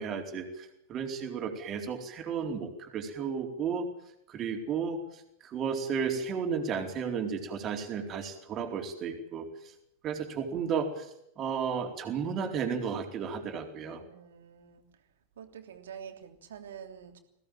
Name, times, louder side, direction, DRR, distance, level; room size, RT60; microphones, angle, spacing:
voice 1, 0.0-3.9 4.3-9.7 10.0-14.0, right 6 dB, 30° right, 3 dB, 4.3 m, -33 dB
voice 2, 13.9-14.9 15.4-17.2, right 8 dB, 60° right, 5 dB, 3.2 m, -47 dB
22.0 x 17.5 x 9.0 m, 0.79 s
figure-of-eight pair, 90°, 0 cm